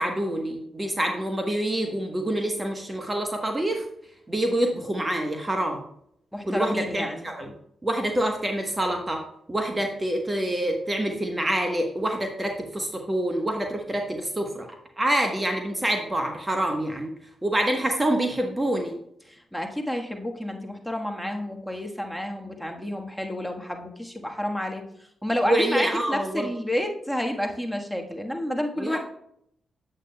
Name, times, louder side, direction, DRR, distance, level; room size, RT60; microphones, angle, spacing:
voice 1, 0.0-3.8 4.3-5.8 6.4-7.5 7.8-9.2 9.5-14.7 15.0-17.1 17.4-19.0 25.4-26.5 28.8-29.0, right 1 dB, 25° right, 3 dB, 1.2 m, -26 dB
voice 2, 6.3-7.3 19.3-24.8 25.2-29.0, left 1 dB, ahead, 2 dB, 1.5 m, -30 dB
8.8 x 8.0 x 2.3 m, 0.72 s
supercardioid pair, 45°, 0 cm